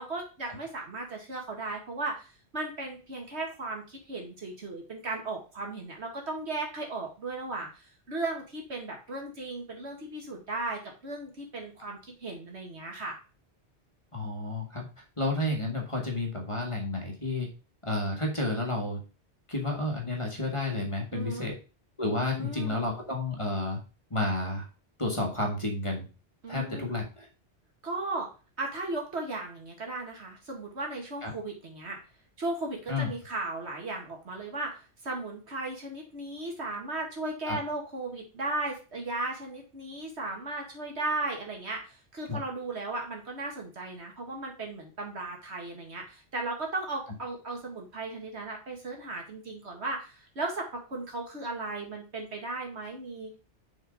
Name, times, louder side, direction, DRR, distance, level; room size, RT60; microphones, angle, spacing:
voice 1, 0.0-2.3 2.5-13.2 21.1-21.5 22.2-22.8 26.4-26.9 27.8-28.3 28.6-32.0 32.4-53.4, right 2 dB, 70° right, 1 dB, 2.2 m, -36 dB
voice 2, 14.1-14.9 15.2-17.5 17.8-19.0 19.5-21.5 22.0-23.8 24.1-24.7 25.0-26.0 26.5-27.3 31.2-31.3 32.9-33.1 37.5-37.6 42.3-42.4, left 2 dB, 25° left, 0 dB, 1.7 m, -31 dB
6.4 x 4.6 x 5.0 m, 0.33 s
omnidirectional pair, 1.2 m